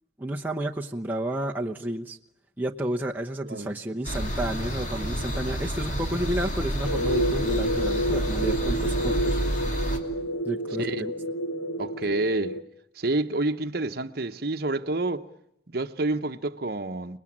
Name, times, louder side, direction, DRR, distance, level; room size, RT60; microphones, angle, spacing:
voice 1, 0.2-2.2 2.6-9.4 10.4-11.1, right 1 dB, 10° right, 0.9 m, -31 dB
voice 2, 3.4-3.8 10.8-11.0 11.8-12.6 13.0-15.3 15.7-17.2, right 2 dB, 55° right, 1.0 m, -28 dB
sound 1, 4.0-10.0, right 1 dB, 40° left, 2.7 m, -29 dB
sound 2, 6.8-12.6, right 1 dB, 60° left, 1.2 m, -29 dB
29.5 x 20.0 x 8.7 m
head